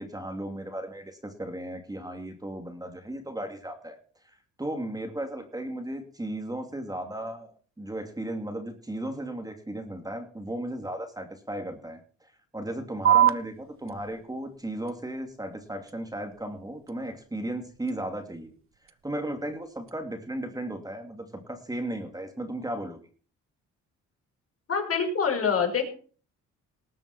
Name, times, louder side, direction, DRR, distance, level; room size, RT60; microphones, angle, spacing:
voice 1, 0.0-4.0 4.2-18.5 19.0-23.0, right 1 dB, 10° right, 5 dB, 2.7 m, -35 dB
sound 1, 13.0-20.0, right 11 dB, 45° right, 1.0 m, -31 dB
voice 2, 24.7-25.8, left 6 dB, 50° left, 3 dB, 5.5 m, -25 dB
19.5 x 6.9 x 6.0 m, 0.42 s
cardioid pair, 90°, 30 cm